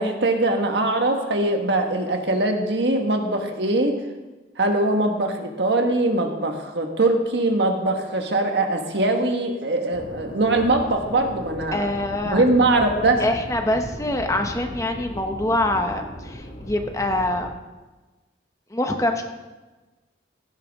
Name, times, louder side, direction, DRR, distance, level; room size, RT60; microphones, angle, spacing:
voice 1, 0.0-4.0 4.6-11.9 12.3-13.2, right 2 dB, 70° right, 3 dB, 1.5 m, -22 dB
sound 1, 9.9-17.5, equal, 55° left, 2.2 m, -37 dB
voice 2, 11.7-12.4 13.2-17.5 18.7-19.2, left 1 dB, 15° left, 4 dB, 0.9 m, -24 dB
16.5 x 10.5 x 3.6 m, 1.2 s
head